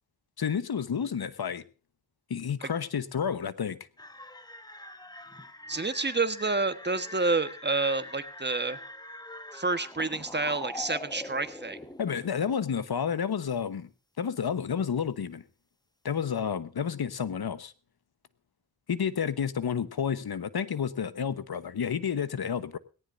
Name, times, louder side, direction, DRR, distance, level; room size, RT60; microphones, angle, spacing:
voice 1, 0.4-1.6 2.3-3.8 12.0-13.9 14.2-15.4 16.0-17.7 18.9-22.8, left 7 dB, 70° left, 14 dB, 1.2 m, -30 dB
sound 1, 4.0-12.3, left 1 dB, 10° left, 1.3 m, -44 dB
voice 2, 5.7-8.8 9.5-11.8, right 3 dB, 25° right, 11 dB, 1.3 m, -29 dB
19.0 x 18.0 x 2.6 m, 0.34 s
wide cardioid pair, 110°, 39 cm